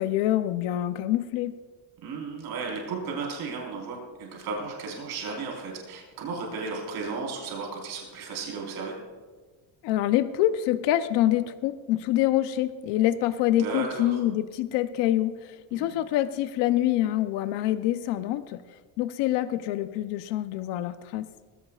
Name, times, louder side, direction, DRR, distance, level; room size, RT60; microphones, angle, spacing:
voice 1, 0.0-1.5 9.8-18.6 19.0-21.3, left 13 dB, 85° left, 11 dB, 0.8 m, -26 dB
voice 2, 2.0-8.9 13.6-14.2 15.7-16.0, right 4 dB, 65° right, -1 dB, 4.4 m, -34 dB
20.5 x 16.5 x 2.4 m, 1.4 s
cardioid pair, 160°, 41 cm